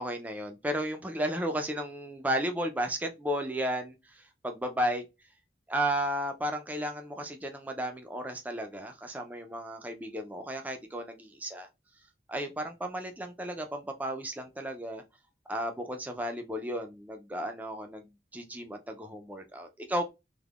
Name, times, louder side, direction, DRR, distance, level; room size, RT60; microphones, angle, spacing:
voice 1, 0.0-5.0 5.7-11.7 12.3-15.0 15.5-20.0, right 1 dB, 10° right, 0.3 m, -34 dB
3.4 x 2.1 x 2.3 m
head